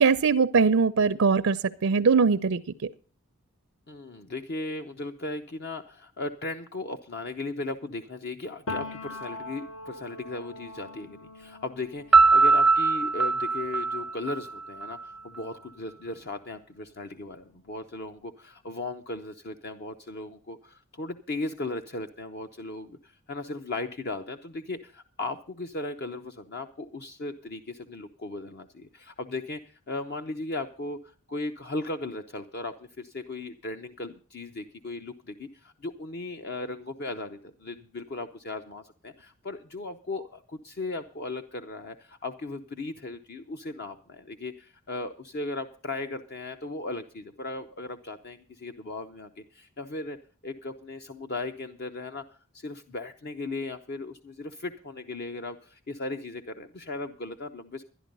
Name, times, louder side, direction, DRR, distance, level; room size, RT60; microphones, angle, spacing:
voice 1, 0.0-2.9, right 5 dB, 75° right, 0.5 m, -22 dB
voice 2, 3.9-50.2 50.4-57.8, left 2 dB, 50° left, 0.7 m, -37 dB
Piano, 8.7-16.3 16.6-18.2, left 2 dB, 75° left, 1.1 m, -43 dB
Piano 2, 12.1-14.9, right 4 dB, ahead, 0.5 m, -21 dB
12.0 x 11.0 x 5.3 m
head